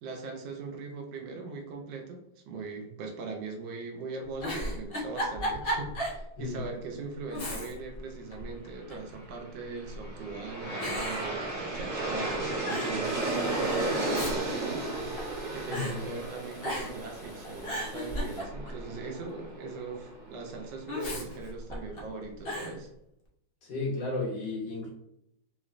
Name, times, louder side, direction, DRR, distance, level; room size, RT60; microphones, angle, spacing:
voice 1, 0.0-14.0 14.3-14.9 15.5-22.9, right 4 dB, 90° right, 2 dB, 1.4 m, -40 dB
Giggle, 4.4-6.2 6.6-6.7 7.3-8.0 8.3-9.1 9.9-10.3 10.8-12.0 12.3-12.4 12.6-13.0 13.8-15.4 15.7-16.0 16.6-17.1 17.4-18.8 20.9-22.0 22.4-22.8, equal, 45° left, 0.8 m, -35 dB
Aircraft, 9.6-20.7, right 2 dB, 60° right, 1.5 m, -34 dB
Domestic sounds home sounds, 13.0-18.4, equal, 25° right, 1.2 m, -51 dB
voice 2, 15.7-16.0 23.7-24.9, left 2 dB, 85° left, -5 dB, 1.8 m, -33 dB
3.7 x 3.1 x 2.4 m, 0.80 s
omnidirectional pair, 1.9 m